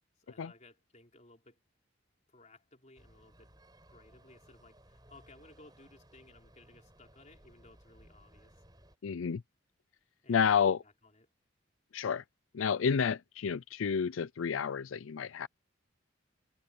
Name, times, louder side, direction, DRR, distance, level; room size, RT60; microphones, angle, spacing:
voice 1, 0.2-1.6 2.3-3.6 3.9-8.6 9.2-9.3 10.2-11.3, left 2 dB, 35° left, 4.0 m, -59 dB
sound 1, 2.9-9.0, right 1 dB, 20° right, 7.2 m, -61 dB
voice 2, 9.0-9.4 10.3-10.8 11.9-12.2 12.5-15.5, left 6 dB, 85° left, 0.4 m, -30 dB
head